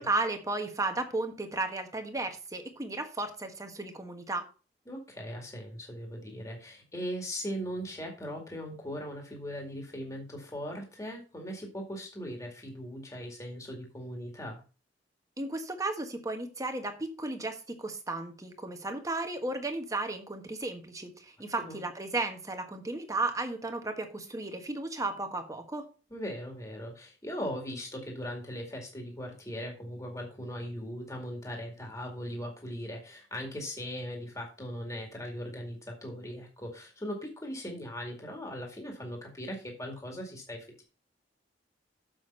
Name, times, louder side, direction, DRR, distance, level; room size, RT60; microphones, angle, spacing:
voice 1, 0.0-4.4 15.4-25.9, right 2 dB, 20° right, 5 dB, 1.3 m, -34 dB
voice 2, 4.9-14.6 21.6-21.8 26.1-40.8, equal, 20° left, 1 dB, 2.1 m, -39 dB
7.1 x 6.4 x 5.4 m, 0.34 s
head